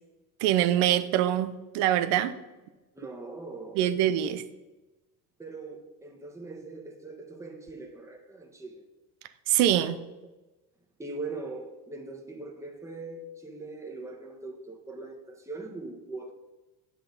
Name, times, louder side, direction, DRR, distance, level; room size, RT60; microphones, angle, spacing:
voice 1, 0.4-2.4 3.8-4.4 9.5-10.0, right 12 dB, 70° right, 12 dB, 0.8 m, -24 dB
voice 2, 2.9-3.8 5.4-8.9 10.2-10.3 11.0-16.3, right 3 dB, 5° right, 1 dB, 1.4 m, -41 dB
8.3 x 7.7 x 4.0 m, 1.1 s
supercardioid pair, 85°, 44 cm